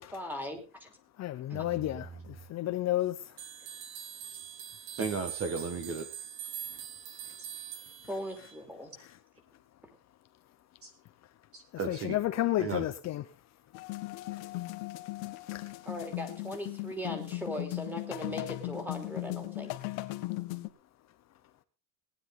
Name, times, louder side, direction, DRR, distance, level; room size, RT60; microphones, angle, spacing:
voice 1, 0.1-0.9 1.5-1.6 8.1-8.9 15.8-19.8, equal, 5° right, 2.9 m, -39 dB
voice 2, 1.2-3.2 9.0-9.1 11.9-13.2 15.5-15.7, left 14 dB, 35° left, 0.8 m, -31 dB
sound 1, 3.4-8.6, right 9 dB, 70° right, 2.2 m, -43 dB
voice 3, 4.9-6.1 10.8-10.9 11.5-12.2 12.6-12.8, right 5 dB, 30° right, 1.5 m, -35 dB
sound 2, 13.7-20.7, left 19 dB, 60° left, 1.4 m, -38 dB
18.5 x 10.0 x 3.9 m
cardioid pair, 150°, 47 cm